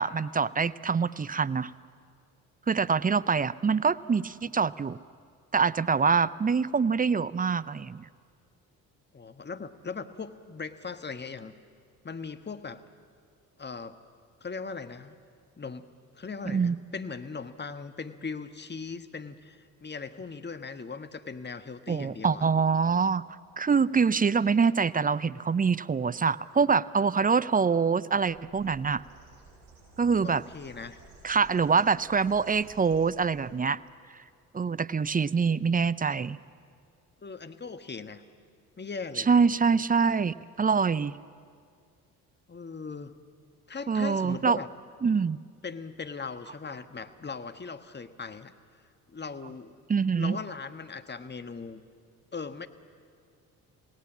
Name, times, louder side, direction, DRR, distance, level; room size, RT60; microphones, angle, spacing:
voice 1, 0.0-1.7 2.7-5.0 5.5-8.1 16.5-16.8 21.9-23.2 23.6-29.0 30.0-30.4 31.2-33.8 34.5-36.4 39.2-41.1 43.9-44.6 45.0-45.4 49.9-50.4, right 5 dB, 20° right, 18 dB, 0.6 m, -25 dB
voice 2, 9.1-11.6 12.0-12.8 13.6-14.0 14.4-15.2 15.6-15.9 16.1-22.4 30.2-31.0 37.2-38.2 38.8-39.3 42.5-43.2 43.7-44.7 45.6-48.5 49.1-49.7 50.1-51.8 52.3-52.7, left 4 dB, 25° left, 9 dB, 1.4 m, -39 dB
Bird, 28.1-33.6, right 3 dB, 65° right, 7.4 m, -54 dB
27.5 x 18.0 x 7.4 m, 2.2 s
hypercardioid pair, 50°, 43 cm